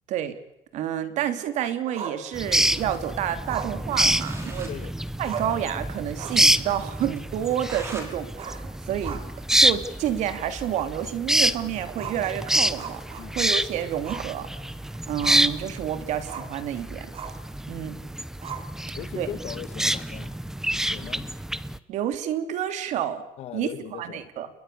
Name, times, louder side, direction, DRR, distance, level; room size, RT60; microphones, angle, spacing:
voice 1, 0.7-4.7 5.2-9.2 9.6-13.0 13.3-14.5 15.1-17.1 17.7-18.0 19.1-19.3 21.9-23.2 23.5-24.5, right 10 dB, 70° right, 2.9 m, -29 dB
Growling, 1.9-2.8 3.5-4.7 5.0-5.1 5.2-5.7 6.1-6.5 6.9-7.0 8.3-9.5 9.9-10.0 10.5-10.6 11.9-13.6 14.0-14.3 14.7-15.6 16.3-16.6 17.1-17.5 18.4-19.0, right 7 dB, 55° right, 3.9 m, -38 dB
sound 1, 2.3-21.8, right 1 dB, 5° right, 0.8 m, -27 dB
sound 2, 3.9-4.8 5.1-5.2 5.4-5.5 5.9-6.0 6.4-6.5 7.2-8.1 8.5-9.8, right 2 dB, 20° right, 5.9 m, -42 dB
voice 2, 18.9-20.4 20.9-21.3 23.4-24.2, left 11 dB, 60° left, 1.8 m, -38 dB
28.5 x 22.0 x 6.8 m
cardioid pair, 145°, 12 cm